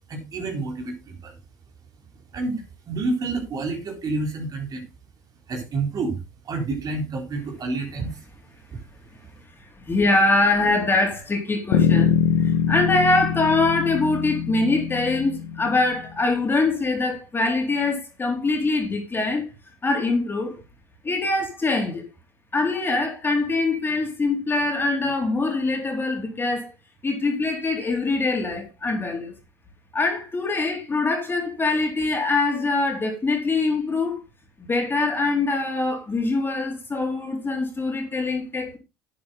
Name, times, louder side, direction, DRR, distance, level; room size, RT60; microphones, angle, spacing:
voice 1, 0.1-1.4 2.3-4.8 5.5-6.2 6.4-8.2 8.7-8.8, right 3 dB, 40° right, 3.9 m, -29 dB
voice 2, 9.6-19.5 19.8-20.6 21.0-22.0 22.5-26.7 27.0-29.3 29.9-34.2 34.6-38.8, left 3 dB, 25° left, 4.0 m, -23 dB
Bass guitar, 11.7-16.1, left 8 dB, 80° left, 1.6 m, -23 dB
10.5 x 8.5 x 3.9 m
hypercardioid pair, 75°, 9 cm